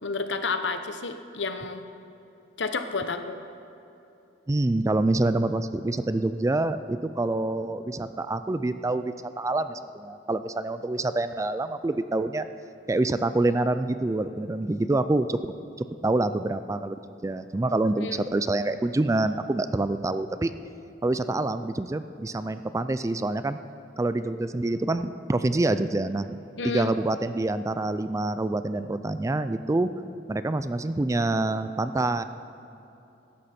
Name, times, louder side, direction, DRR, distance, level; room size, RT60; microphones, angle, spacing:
voice 1, 0.0-1.8 2.6-3.4 18.0-18.3 26.6-26.9, left 4 dB, 70° left, 8 dB, 0.9 m, -30 dB
voice 2, 4.5-12.5 12.9-15.4 16.0-20.5 21.0-23.6 24.0-26.4 26.6-29.9 30.3-32.2, right 2 dB, 15° right, 11 dB, 0.3 m, -26 dB
16.5 x 13.0 x 4.4 m, 2.9 s
head